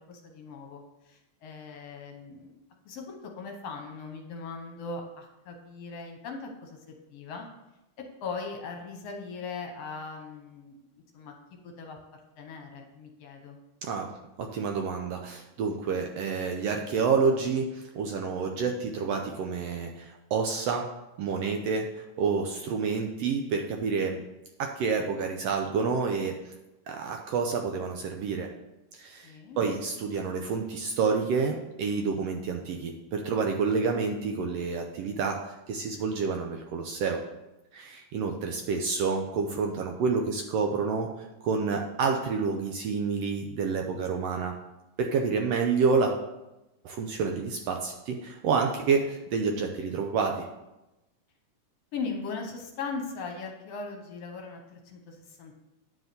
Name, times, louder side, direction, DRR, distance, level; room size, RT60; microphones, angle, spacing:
voice 1, 0.0-2.6 2.9-7.5 8.0-10.8 11.1-11.3 11.6-12.0 12.4-13.6 29.2-29.6 51.9-55.6, left 4 dB, 65° left, 3 dB, 1.9 m, -39 dB
voice 2, 14.4-20.9 21.2-24.2 24.6-26.5 26.9-28.5 28.9-37.2 37.7-44.5 45.0-46.2 46.8-50.5, right 5 dB, 70° right, 3 dB, 1.6 m, -29 dB
9.7 x 4.8 x 6.7 m, 0.97 s
omnidirectional pair, 3.4 m